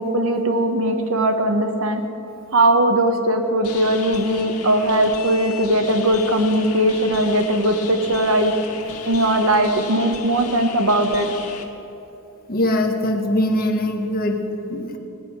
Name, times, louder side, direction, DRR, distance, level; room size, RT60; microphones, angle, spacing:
voice 1, 0.0-2.0 2.5-8.5 9.1-11.3, right 1 dB, 65° right, 6 dB, 1.3 m, -19 dB
sound 1, 3.6-11.6, left 5 dB, 85° left, 1.8 m, -35 dB
voice 2, 12.5-14.4 14.7-15.0, left 1 dB, 40° left, 3 dB, 1.4 m, -21 dB
19.0 x 9.4 x 6.3 m, 2.9 s
head